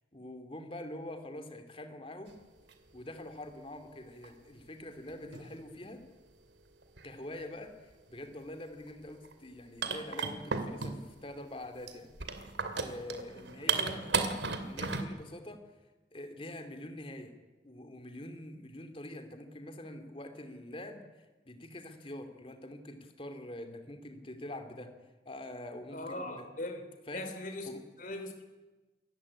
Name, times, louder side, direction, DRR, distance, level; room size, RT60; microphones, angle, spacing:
voice 1, 0.1-2.4 2.9-6.0 7.0-12.1 12.7-15.6 16.1-17.3 17.6-24.9 25.2-26.5 27.1-27.3 27.7-27.8, left 1 dB, 30° left, 7 dB, 2.8 m, -45 dB
sound 1, 2.7-2.8 4.2-4.3 5.1-5.6 6.8-7.1 8.9-9.0 9.2-9.3 9.8-11.2 11.9-15.0, right 5 dB, 75° right, 2.5 m, -34 dB
voice 2, 25.9-26.8 27.1-27.7 28.0-28.5, left 1 dB, 45° left, 6 dB, 3.1 m, -40 dB
27.5 x 15.0 x 9.9 m, 1.2 s
head